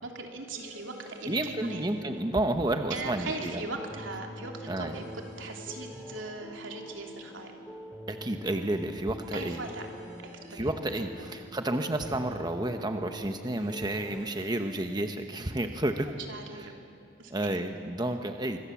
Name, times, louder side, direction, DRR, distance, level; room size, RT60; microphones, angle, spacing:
voice 1, 0.0-1.8 2.9-5.1 5.4-7.5 9.3-9.9 10.5-11.2 16.3-16.7 17.2-17.6, right 3 dB, 80° right, 2 dB, 3.1 m, -39 dB
sound 1, 0.5-1.9 4.9-6.2 9.2-10.5 13.5-14.9, equal, 45° right, 3.2 m, -51 dB
sound 2, 1.2-14.2, equal, ahead, 2.2 m, -45 dB
voice 2, 1.3-3.6 4.7-5.0 8.1-9.6 10.5-16.1 17.3-18.6, right 1 dB, 20° right, 6 dB, 1.0 m, -31 dB
25.5 x 24.0 x 7.2 m, 2.4 s
head